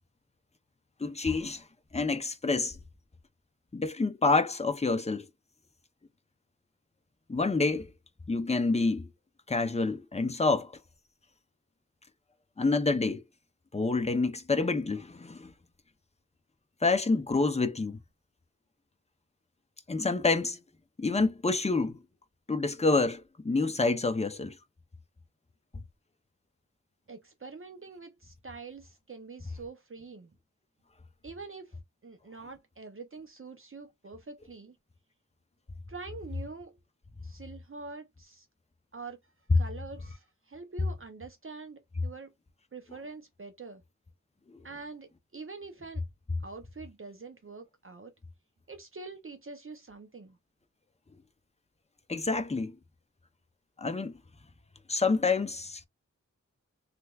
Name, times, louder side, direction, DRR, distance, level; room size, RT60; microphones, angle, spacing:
voice 1, 1.0-1.6 1.9-2.8 3.7-5.3 7.3-7.9 8.3-9.1 9.5-10.7 12.6-13.2 13.7-15.5 16.8-18.0 19.9-20.6 21.0-22.0 22.5-24.6 44.5-44.6 52.1-52.8 53.8-54.1 54.9-55.9, left 3 dB, 20° left, 0.6 m, -28 dB
voice 2, 27.1-30.3 31.2-34.8 35.9-36.8 37.2-38.5 38.9-42.3 42.7-43.8 44.6-46.0 46.4-48.1 48.7-50.4, right 4 dB, 45° right, 0.7 m, -45 dB
3.3 x 3.0 x 2.3 m
wide cardioid pair, 65°, 30 cm